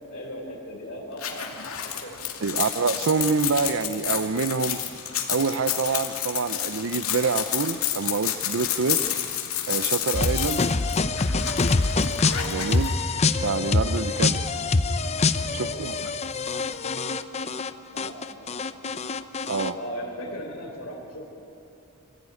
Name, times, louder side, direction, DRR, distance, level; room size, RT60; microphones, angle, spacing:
voice 1, 0.1-1.4 1.8-2.1 2.5-2.6 15.4-15.9 17.9-18.6 19.7-21.3, equal, 60° left, -6 dB, 4.2 m, -38 dB
sound 1, 1.2-12.9, left 10 dB, 80° left, 2.6 m, -29 dB
voice 2, 2.4-4.8 5.3-9.0 9.7-10.6 12.4-12.9 13.4-14.4 15.5-16.1 19.5-19.8, right 5 dB, 65° right, 13 dB, 0.6 m, -26 dB
sound 2, 10.1-17.7 18.0-19.7, left 3 dB, 30° left, 0.7 m, -25 dB
26.0 x 15.0 x 9.7 m, 2.7 s
head